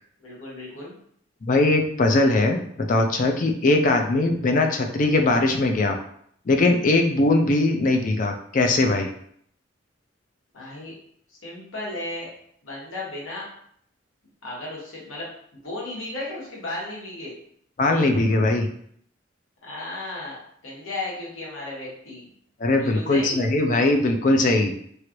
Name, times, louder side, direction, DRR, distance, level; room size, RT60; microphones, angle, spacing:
voice 1, 0.2-0.9 10.5-10.9 11.3-12.3 12.6-13.5 14.4-15.3 15.6-17.4 19.6-22.2 22.7-23.4, left 2 dB, 90° left, -5 dB, 1.3 m, -34 dB
voice 2, 1.4-6.0 6.5-9.1 17.8-18.7 22.6-24.7, left 2 dB, 40° left, 4 dB, 0.4 m, -20 dB
3.1 x 2.5 x 2.9 m, 0.66 s
head